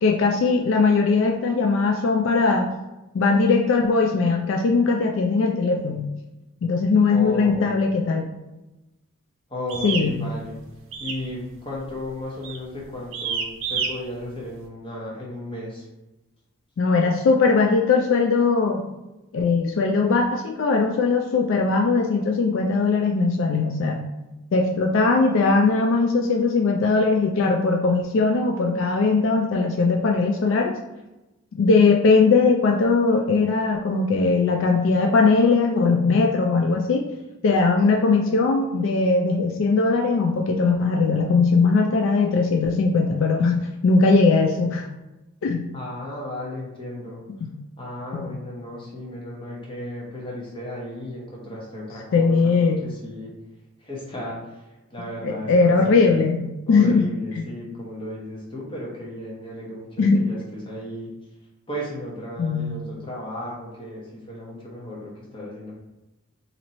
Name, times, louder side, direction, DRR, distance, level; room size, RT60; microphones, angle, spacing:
voice 1, 0.0-2.8 3.1-6.1 6.6-8.3 9.8-10.2 16.8-18.9 19.3-24.0 24.5-30.7 31.6-37.1 37.4-44.9 45.4-45.7 47.4-47.5 48.1-48.3 52.1-52.8 55.2-57.1 57.4-57.5 60.0-60.3 62.4-62.7, left 4 dB, 65° left, 1 dB, 0.3 m, -20 dB
voice 2, 7.1-7.8 9.5-10.6 11.0-15.9 45.7-47.2 47.8-53.3 53.8-56.1 56.7-61.1 61.7-65.7, left 1 dB, 25° left, -4 dB, 0.9 m, -35 dB
sound 1, 9.7-10.1 10.9-11.3 11.5-11.9 12.4-12.7 13.1-13.9, right 5 dB, 70° right, 0.5 m, -28 dB
2.9 x 2.7 x 4.1 m, 1.0 s
head